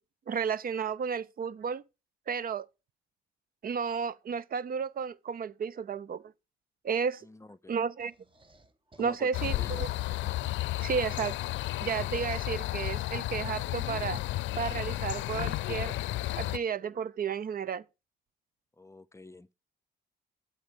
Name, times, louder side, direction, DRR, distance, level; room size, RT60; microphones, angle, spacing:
voice 1, 0.3-1.8 2.3-2.7 3.6-6.3 6.8-7.3 7.7-8.1 9.0-9.9 10.8-11.4 11.8-14.2 14.6-15.9 16.4-17.8, right 6 dB, 50° right, 0.6 m, -32 dB
voice 2, 7.2-7.8 9.0-9.9 18.7-19.5, left 2 dB, 15° left, 0.7 m, -48 dB
sound 1, 8.0-11.5, right 2 dB, 25° right, 1.5 m, -60 dB
sound 2, 9.3-16.6, left 16 dB, 75° left, 0.6 m, -33 dB
13.0 x 8.4 x 5.1 m
supercardioid pair, 65°, 20 cm